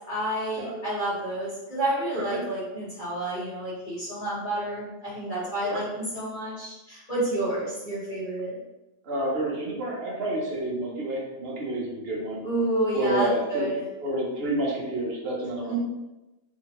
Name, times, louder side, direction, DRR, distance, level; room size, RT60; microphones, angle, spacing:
voice 1, 0.1-8.6 12.4-13.8 15.7-15.8, right 1 dB, 35° left, -11 dB, 1.5 m, -29 dB
voice 2, 9.0-12.4 12.9-13.7 14.0-15.7, right 1 dB, 50° right, -3 dB, 0.8 m, -29 dB
3.2 x 2.7 x 2.9 m, 1.0 s
omnidirectional pair, 1.7 m